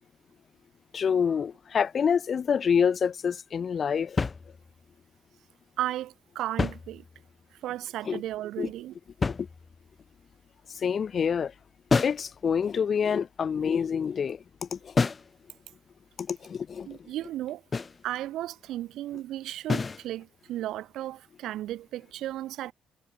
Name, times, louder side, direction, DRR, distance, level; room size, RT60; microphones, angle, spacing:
voice 1, 0.9-4.2 8.1-8.2 8.6-8.7 9.4-9.5 10.7-11.5 12.0-14.9 16.2-16.9, left 7 dB, 50° left, 1.2 m, -27 dB
sound 1, 4.2-4.9 6.4-7.4 9.2-10.0 11.9-12.3 15.0-15.4 17.7-18.0 19.7-20.1, left 4 dB, 30° left, 2.5 m, -29 dB
voice 2, 5.8-7.0 7.6-8.9 16.9-17.6 18.0-22.7, right 13 dB, 85° right, 1.9 m, -34 dB
cardioid pair, 90°, 0 cm